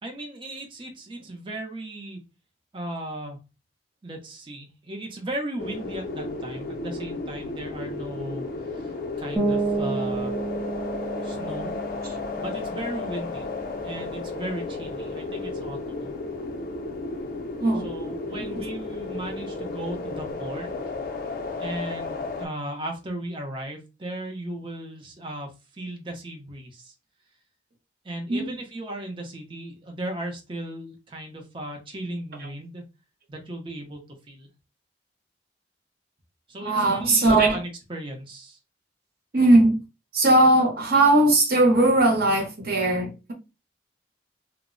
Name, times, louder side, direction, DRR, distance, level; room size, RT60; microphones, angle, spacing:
voice 1, 0.0-2.2 2.7-3.4 4.0-10.4 11.2-11.8 12.4-13.5 13.8-16.1 17.8-21.0 21.6-26.9 28.0-32.8 33.3-34.0 34.3-34.5 36.5-38.6, right 1 dB, 30° right, 0.6 m, -36 dB
sound 1, 5.6-22.5, left 3 dB, 50° left, 0.5 m, -33 dB
sound 2, 9.4-15.0, right 3 dB, 5° left, 0.8 m, -31 dB
voice 2, 17.6-17.9 18.4-18.5 28.3-28.6 36.6-37.6 39.3-39.8 40.1-43.3, right 2 dB, 55° right, 0.9 m, -19 dB
2.1 x 2.0 x 3.7 m
head